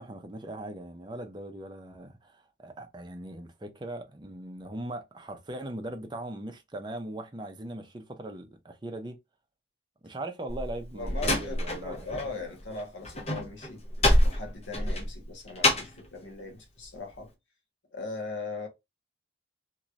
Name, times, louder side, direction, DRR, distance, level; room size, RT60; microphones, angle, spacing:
voice 1, 0.0-9.2 10.0-12.2, right 1 dB, 25° right, 0.6 m, -40 dB
Slam, 10.5-12.3 12.6-16.1, left 1 dB, 35° left, 0.9 m, -26 dB
voice 2, 10.9-13.8 14.2-17.3 17.9-18.7, left 3 dB, 80° left, 1.2 m, -39 dB
3.0 x 2.9 x 2.4 m
head